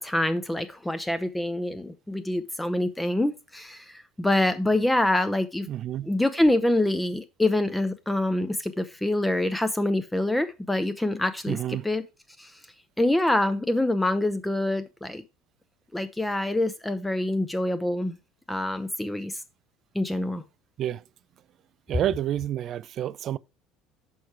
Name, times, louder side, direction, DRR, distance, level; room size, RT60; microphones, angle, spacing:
voice 1, 0.0-5.7 6.0-11.6 11.8-12.0 12.4-12.5 13.0-15.2 15.9-18.2 18.5-19.4 19.9-20.4, left 1 dB, 5° left, 0.6 m, -25 dB
voice 2, 5.7-6.1 11.5-11.9 20.8-21.0 21.9-23.4, right 11 dB, 50° right, 0.3 m, -29 dB
6.3 x 4.7 x 4.6 m
hypercardioid pair, 70°, 0 cm